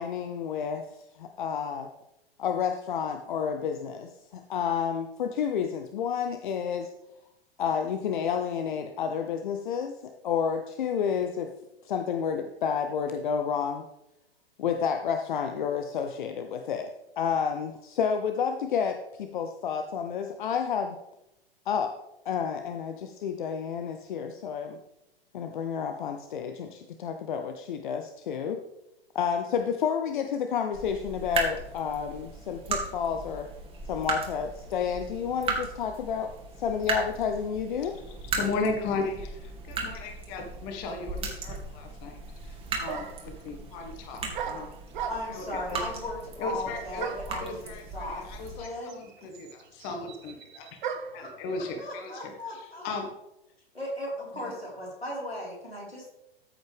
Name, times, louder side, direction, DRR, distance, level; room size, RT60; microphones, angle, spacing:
voice 1, 0.0-1.9 2.4-6.9 7.6-11.5 11.8-13.9 14.6-21.0 21.7-21.9 22.2-24.8 25.3-28.6 29.1-33.5 33.9-36.3 36.6-37.9, left 7 dB, 55° left, 6 dB, 0.9 m, -30 dB
sound 1, 30.7-48.6, right 3 dB, 20° right, 2.1 m, -37 dB
voice 2, 37.8-44.7 45.3-45.9 46.4-50.7 51.1-53.1, left 3 dB, 35° left, 3 dB, 1.8 m, -36 dB
sound 2, 42.4-42.5 42.8-43.3 44.3-45.5 47.0-47.4 48.3-48.4 48.6-51.2, right 8 dB, 50° right, 1.4 m, -37 dB
voice 3, 45.1-48.2 48.5-49.0 51.1-51.3 51.8-52.9 53.7-56.1, left 1 dB, 90° left, -4 dB, 4.6 m, -37 dB
14.0 x 7.9 x 3.5 m, 0.89 s
figure-of-eight pair, 100°, 30 cm